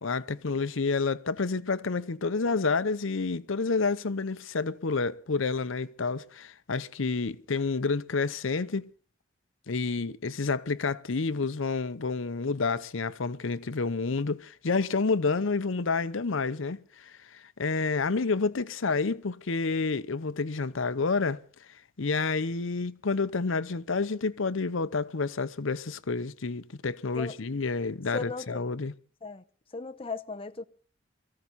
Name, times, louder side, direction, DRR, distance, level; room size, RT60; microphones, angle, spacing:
voice 1, 0.0-8.8 9.7-21.4 22.0-28.9, left 4 dB, 70° left, 0.7 m, -29 dB
voice 2, 28.1-28.6 29.2-29.4 29.7-30.6, left 3 dB, 25° left, 0.8 m, -37 dB
23.0 x 15.0 x 4.1 m
head